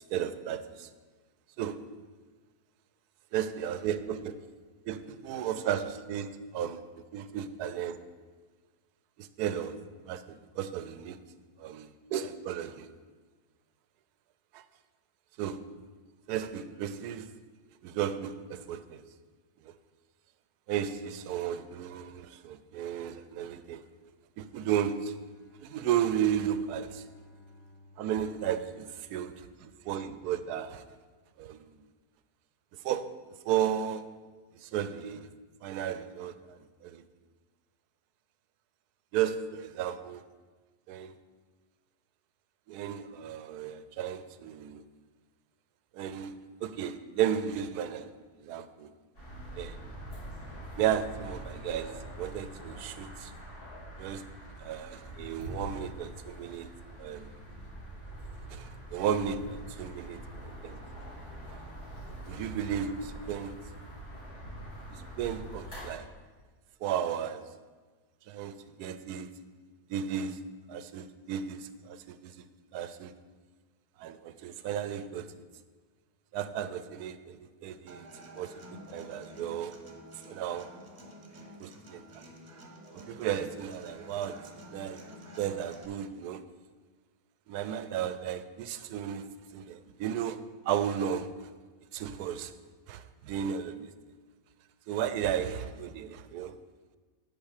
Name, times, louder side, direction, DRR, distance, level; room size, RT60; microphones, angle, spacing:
voice 1, 0.1-0.9 1.6-1.8 3.3-4.4 4.9-6.8 7.1-8.0 9.2-9.8 10.1-11.2 11.6-12.9 14.5-14.6 15.4-15.7 16.3-17.3 17.8-19.0 19.6-19.7 20.7-23.8 24.4-25.2 25.6-27.0 28.0-30.8 31.4-31.8 32.7-33.2 33.5-34.1 34.5-35.3 35.6-37.0 39.1-40.2 40.9-41.1 42.7-44.8 45.9-48.1 48.4-48.9 49.6-49.8 50.8-53.3 54.0-54.3 54.6-56.7 57.0-57.3 58.5-60.8 61.5-61.6 62.2-63.5 64.9-66.1 66.8-67.6 68.3-69.3 69.9-72.4 72.7-73.1 74.0-75.3 76.3-78.1 78.4-79.8 80.3-80.7 81.6-82.2 82.9-85.0 85.4-86.4 87.5-89.3 89.5-91.5 91.9-92.5 92.9-93.9 94.9-96.6, right 9 dB, 90° right, 13 dB, 1.1 m, -34 dB
Bowed string instrument, 25.0-29.3, left 1 dB, 60° left, 2.3 m, -57 dB
sound 1, 49.1-65.8, right 1 dB, 75° left, 3.8 m, -44 dB
Human voice / Acoustic guitar, 77.9-85.9, equal, 30° right, 1.0 m, -50 dB
8.9 x 5.4 x 6.5 m, 1.4 s
omnidirectional pair, 1.6 m